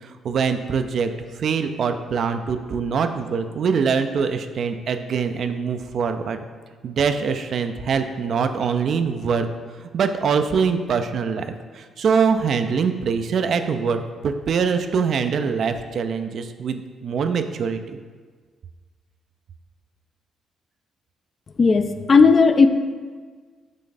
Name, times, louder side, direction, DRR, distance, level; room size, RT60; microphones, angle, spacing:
voice 1, 0.0-6.4 6.8-9.5 9.9-11.4 11.7-18.0, right 6 dB, 55° right, 8 dB, 0.4 m, -23 dB
voice 2, 21.6-22.7, left 4 dB, 40° left, 9 dB, 0.4 m, -14 dB
7.3 x 3.3 x 4.0 m, 1.5 s
hypercardioid pair, 45°, 0 cm